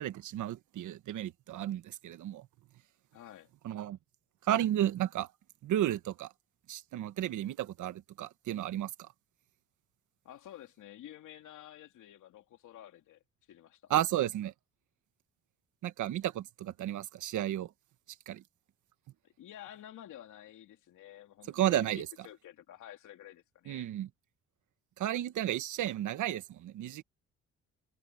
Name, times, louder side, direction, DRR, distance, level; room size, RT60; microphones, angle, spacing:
voice 1, 0.0-2.5 3.6-4.0 4.5-5.3 5.6-6.3 6.7-9.1 13.9-14.5 15.8-17.7 18.3-18.4 21.5-22.1 23.7-24.1 25.0-27.0, right 12 dB, 75° right, 1.4 m, -33 dB
voice 2, 3.1-3.5 10.2-13.2 13.5-13.9 19.2-23.9, left 12 dB, 80° left, 3.1 m, -51 dB
cardioid pair, 90°, 30 cm